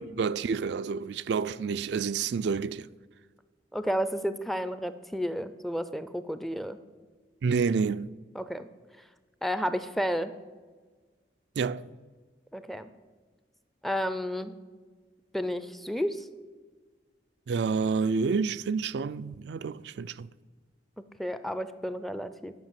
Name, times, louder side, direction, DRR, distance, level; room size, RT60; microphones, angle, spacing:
voice 1, 0.0-2.9 7.4-8.2 11.6-11.8 17.5-20.3, right 5 dB, 70° right, 0.3 m, -29 dB
voice 2, 3.7-6.8 8.3-8.7 9.4-10.3 12.5-12.9 13.8-14.5 15.3-16.3 21.2-22.5, equal, ahead, 0.4 m, -31 dB
12.0 x 5.9 x 7.4 m
head